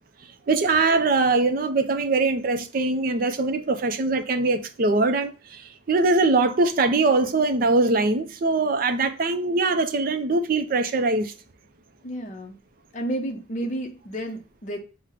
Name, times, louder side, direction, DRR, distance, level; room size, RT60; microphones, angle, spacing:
voice 1, 0.5-11.3, right 3 dB, 45° right, 0.4 m, -22 dB
voice 2, 12.0-12.6 12.9-14.8, right 1 dB, 40° left, 0.7 m, -31 dB
5.8 x 2.1 x 3.6 m
head